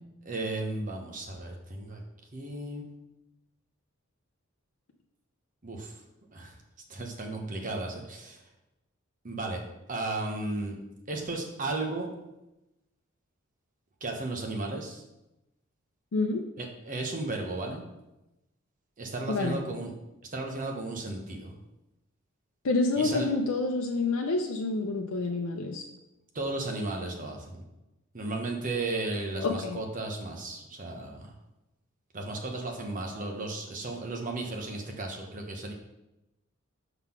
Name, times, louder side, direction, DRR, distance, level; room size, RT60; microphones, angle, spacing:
voice 1, 0.2-2.0 2.3-2.9 5.6-5.9 6.3-6.5 6.9-8.4 9.2-9.6 9.9-10.8 11.1-12.1 14.0-15.0 16.6-17.9 19.0-19.9 20.3-21.5 22.9-23.3 26.3-27.6 28.1-31.3 32.1-35.7, right 2 dB, 40° right, 2 dB, 1.0 m, -34 dB
voice 2, 16.1-16.5 19.3-19.6 22.6-25.8 29.4-29.8, left 3 dB, 90° left, 2 dB, 0.6 m, -28 dB
5.8 x 3.9 x 5.8 m, 0.96 s
head